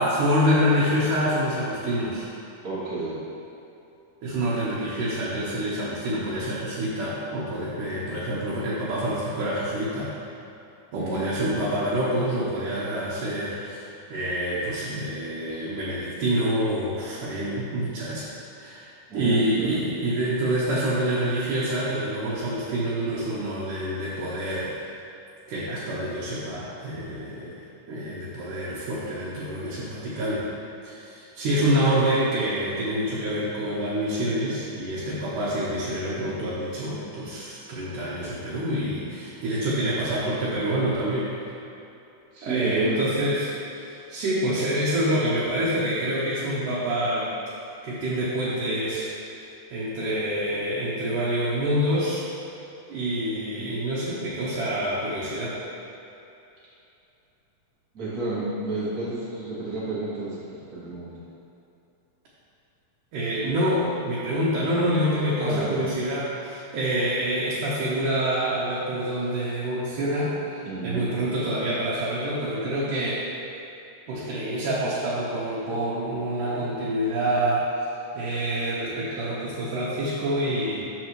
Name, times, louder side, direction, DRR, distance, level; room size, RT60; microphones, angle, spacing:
voice 1, 0.0-2.3 4.2-10.1 10.9-18.3 18.6-24.8 25.5-27.6 27.9-30.5 30.8-41.5 42.4-47.3 47.8-49.2 49.7-52.2 52.9-55.6 63.1-73.3 74.1-77.6 78.1-80.8, right 1 dB, 70° right, -8 dB, 2.6 m, -27 dB
voice 2, 2.6-3.2 10.9-11.6 15.5-15.6 19.1-19.8 42.3-43.1 57.9-60.4 60.7-61.1 65.4-65.8 70.6-71.1, right 2 dB, 30° right, -11 dB, 1.8 m, -30 dB
13.0 x 5.5 x 3.1 m, 2.8 s
omnidirectional pair, 4.0 m